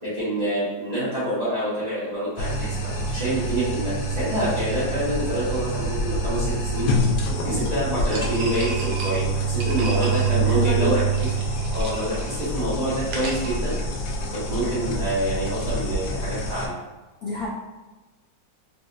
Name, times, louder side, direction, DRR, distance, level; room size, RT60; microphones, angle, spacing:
voice 1, 0.0-6.9 7.4-11.0 11.7-13.8 14.3-16.8, right 1 dB, 30° right, -11 dB, 1.0 m, -27 dB
sound 1, 2.4-16.7, right 2 dB, 85° left, 1.3 m, -26 dB
sound 2, 8.1-14.4, right 2 dB, 70° right, 1.2 m, -37 dB
voice 2, 10.3-10.9 17.2-17.5, left 2 dB, 70° left, -5 dB, 0.9 m, -29 dB
3.7 x 2.5 x 2.3 m, 1.2 s
omnidirectional pair, 2.0 m